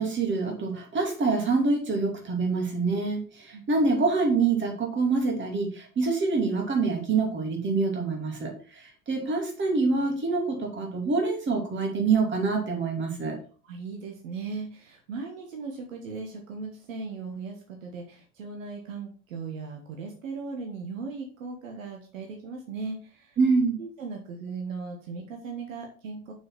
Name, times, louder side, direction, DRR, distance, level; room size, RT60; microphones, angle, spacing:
voice 1, 0.0-13.4 23.4-23.8, right 4 dB, 25° right, 1 dB, 2.7 m, -26 dB
voice 2, 13.6-23.4 23.8-26.3, right 4 dB, 65° right, 2 dB, 1.5 m, -38 dB
6.4 x 4.8 x 5.9 m, 0.40 s
figure-of-eight pair, 75°, 43 cm